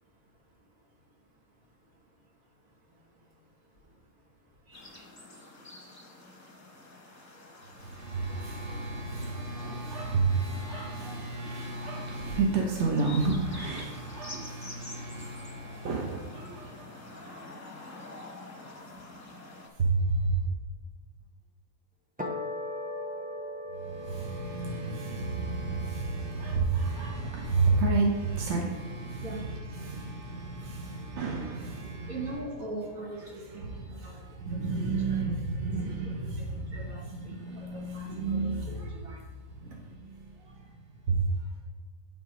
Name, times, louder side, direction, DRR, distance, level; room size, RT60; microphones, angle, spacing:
voice 1, 0.0-5.0 27.1-27.7 29.1-31.2 31.8-35.2 35.6-35.7 36.0-39.9, right 2 dB, 75° right, -2 dB, 1.9 m, -46 dB
sound 1, 4.7-19.7, left 2 dB, 15° left, 0.8 m, -48 dB
voice 2, 7.7-17.1 19.8-20.4 23.7-32.1 34.0-34.1 34.4-38.9 39.6-39.7 40.2-40.7 41.1-41.3, right 3 dB, 55° right, -1 dB, 1.2 m, -31 dB
sound 2, 22.2-28.7, left 1 dB, 10° right, 0.4 m, -40 dB
8.5 x 3.7 x 5.0 m, 1.2 s
omnidirectional pair, 1.5 m